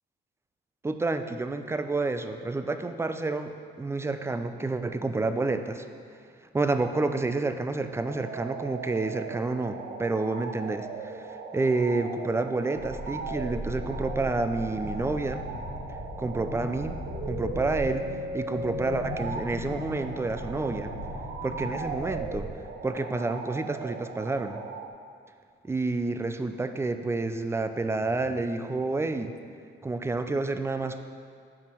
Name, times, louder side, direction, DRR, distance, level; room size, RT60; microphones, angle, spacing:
voice 1, 0.8-5.9 6.5-15.4 16.2-17.0 17.3-20.9 21.4-22.5 22.8-24.6 25.6-29.3 29.8-31.0, right 3 dB, 15° right, 8 dB, 0.5 m, -29 dB
sound 1, 8.0-24.9, right 4 dB, 65° right, 0.7 m, -38 dB
sound 2, 12.7-22.5, left 1 dB, 80° left, 1.3 m, -38 dB
7.3 x 5.1 x 6.1 m, 2.2 s
cardioid pair, 90°, 20 cm